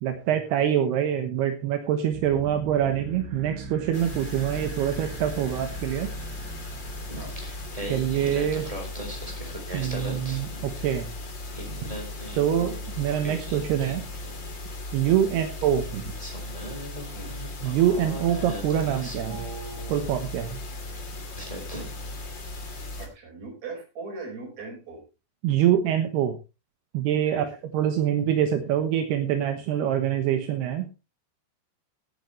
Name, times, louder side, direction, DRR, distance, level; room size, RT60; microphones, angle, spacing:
voice 1, 0.0-6.1 7.9-8.7 9.7-11.1 12.4-14.0 14.9-16.0 17.6-19.5 19.9-20.6 25.4-26.4 26.9-27.5 27.7-30.9, right 10 dB, 75° right, 6 dB, 3.1 m, -25 dB
sound 1, 2.1-10.2, right 4 dB, 60° right, 2.6 m, -42 dB
sound 2, 3.9-23.1, left 2 dB, 35° left, 2.2 m, -37 dB
Singing, 7.1-11.1 11.4-14.6 15.6-15.7 16.2-20.4 21.0-21.1 21.3-22.2, right 1 dB, 10° right, 3.5 m, -39 dB
voice 2, 23.0-25.0 27.3-27.5, right 3 dB, 40° right, 1 dB, 6.1 m, -39 dB
17.5 x 9.6 x 3.2 m, 0.29 s
omnidirectional pair, 4.9 m